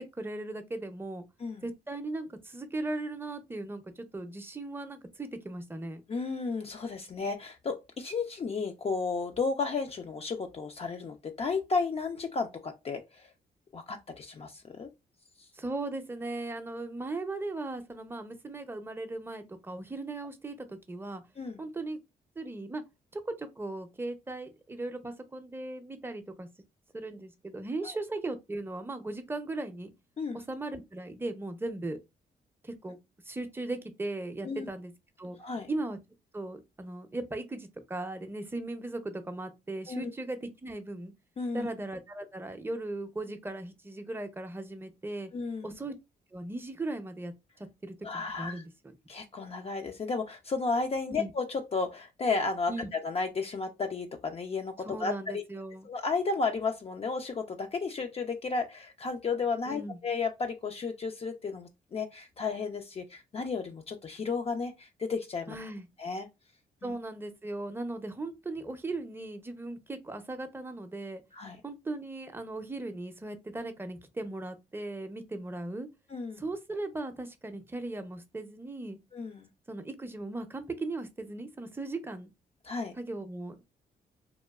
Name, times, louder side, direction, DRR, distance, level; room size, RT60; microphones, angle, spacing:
voice 1, 0.0-1.3 1.6-6.0 15.5-21.2 21.6-22.0 22.4-22.8 23.1-26.5 26.9-29.9 30.3-32.0 32.6-33.0 33.3-34.9 35.2-35.4 35.7-36.0 36.3-41.1 41.5-45.3 45.6-45.9 46.3-47.3 47.8-49.0 51.1-51.3 52.7-52.9 54.8-55.9 59.7-60.0 65.5-65.9 66.8-71.2 71.6-75.9 76.4-79.0 79.7-82.3 83.0-83.6, right 2 dB, 15° right, 0.6 m, -38 dB
voice 2, 6.1-13.0 13.7-14.9 21.4-21.6 27.8-27.9 30.2-30.4 34.4-34.7 35.4-35.7 39.9-40.1 41.4-41.7 45.3-45.7 48.0-48.5 49.1-52.7 53.0-55.4 55.8-65.6 66.0-66.3 66.8-66.9 71.3-71.6 76.1-76.4 79.1-79.5 82.7-82.9, left 4 dB, 40° left, 0.4 m, -33 dB
3.0 x 2.2 x 2.3 m
cardioid pair, 70°, 16 cm